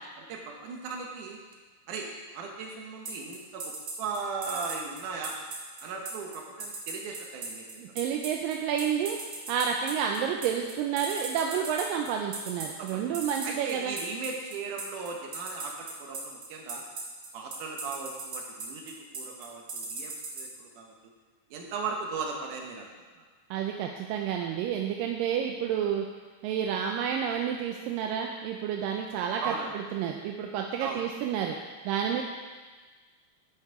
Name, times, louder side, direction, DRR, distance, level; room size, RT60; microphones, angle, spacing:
voice 1, 0.2-1.4 1.9-3.7 4.0-5.3 5.8-7.6 12.8-13.0 13.4-16.8 17.3-20.9 21.5-22.9 23.2-23.3 29.4-29.7 30.8-31.0, right 4 dB, 65° right, 1 dB, 2.4 m, -37 dB
sound 1, 3.1-20.4, right 4 dB, 45° right, 2.1 m, -37 dB
voice 2, 7.8-9.2 9.5-13.9 23.5-26.1 26.4-31.6 31.9-32.2, right 8 dB, 80° right, 2 dB, 2.1 m, -30 dB
9.6 x 6.6 x 4.8 m, 1.4 s
omnidirectional pair, 4.3 m